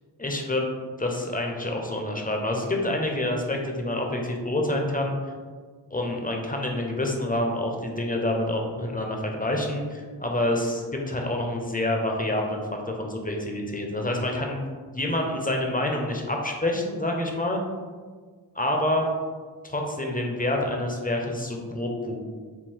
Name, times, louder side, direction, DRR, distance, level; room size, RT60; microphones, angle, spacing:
voice 1, 0.2-0.6 1.0-5.1 5.9-14.6 14.9-17.6 18.6-19.1 19.6-22.2, left 1 dB, 20° left, 1 dB, 0.8 m, -27 dB
3.8 x 2.3 x 4.4 m, 1.5 s
cardioid pair, 40°, 45 cm